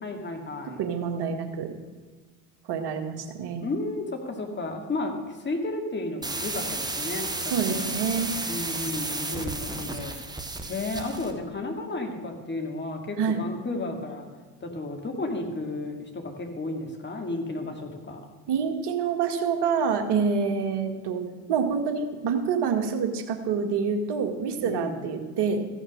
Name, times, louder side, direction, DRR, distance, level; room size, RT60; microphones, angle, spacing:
voice 1, 0.0-0.8 3.6-7.3 7.7-8.0 8.5-10.1 10.7-14.3 14.6-18.2 24.6-25.0, left 2 dB, 25° left, 3 dB, 2.4 m, -33 dB
voice 2, 0.8-1.7 2.7-3.6 7.5-8.3 13.2-13.5 18.5-21.2 21.5-25.7, right 6 dB, 55° right, 5 dB, 1.9 m, -27 dB
sound 1, 6.2-11.4, right 2 dB, 10° right, 1.6 m, -32 dB
15.0 x 6.4 x 6.5 m, 1.4 s
hypercardioid pair, 75°, 47 cm